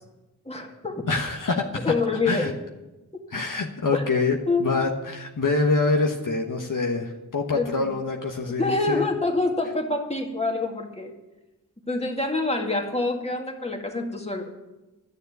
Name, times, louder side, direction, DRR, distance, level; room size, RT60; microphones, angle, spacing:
voice 1, 0.5-1.1 1.8-2.5 3.1-3.2 3.9-4.0 4.5-4.7 7.5-7.9 8.6-11.1 11.9-14.5, left 3 dB, 15° left, 1 dB, 2.2 m, -26 dB
voice 2, 1.1-1.9 2.2-2.5 3.3-9.1, left 3 dB, 60° left, 1 dB, 1.3 m, -25 dB
11.0 x 6.8 x 9.3 m, 1.0 s
cardioid pair, 45°, 36 cm